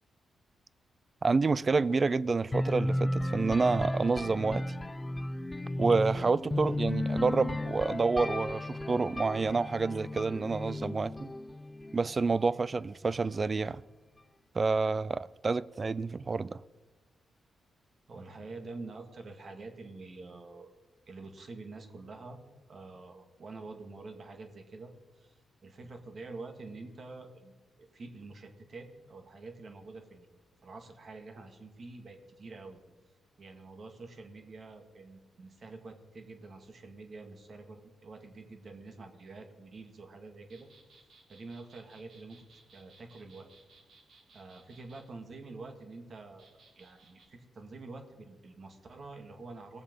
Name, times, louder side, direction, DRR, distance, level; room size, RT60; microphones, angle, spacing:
voice 1, 1.2-4.6 5.8-11.3 11.9-13.8 14.5-16.6, right 4 dB, 35° right, 0.4 m, -28 dB
sound 1, 2.5-12.3, left 1 dB, 20° left, 0.6 m, -34 dB
voice 2, 18.1-20.7 21.1-22.4 22.7-24.9 25.2-25.3 25.6-30.3 30.6-32.8 33.4-40.7 41.3-43.5 44.3-49.8, right 3 dB, 50° right, 2.2 m, -47 dB
sound 2, 40.5-45.0 46.4-47.3, right 3 dB, 75° right, 3.4 m, -60 dB
20.0 x 7.2 x 5.4 m
cardioid pair, 80°, 0 cm